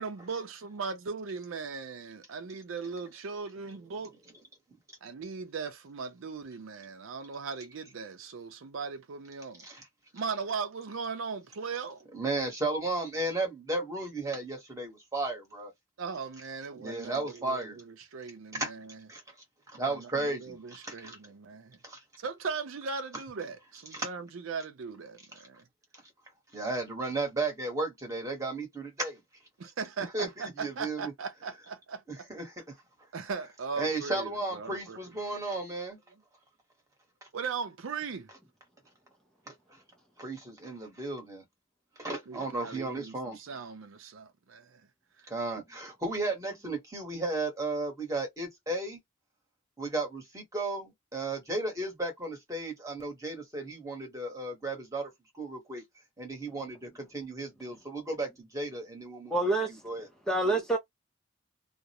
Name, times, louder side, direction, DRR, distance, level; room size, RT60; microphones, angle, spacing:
voice 1, 0.0-4.1 5.0-9.7 10.1-12.1 16.0-19.1 19.8-21.8 22.2-25.6 29.6-32.0 33.1-35.0 37.3-38.3 42.3-44.8 60.5-60.6, right 5 dB, 75° right, 0.5 m, -38 dB
voice 2, 12.1-15.7 16.8-17.8 18.5-18.7 19.1-19.2 19.7-21.2 21.8-22.0 23.9-24.1 25.9-26.0 26.5-29.2 30.1-31.1 32.1-32.8 33.8-36.0 37.2-37.3 39.5-39.6 40.2-41.4 42.0-43.4 45.3-49.0 49.8-55.8 56.2-59.3 59.7-60.1, right 2 dB, 15° right, 1.0 m, -34 dB
voice 3, 59.3-59.7 60.3-60.8, right 2 dB, 5° left, 0.4 m, -26 dB
2.4 x 2.0 x 2.8 m
head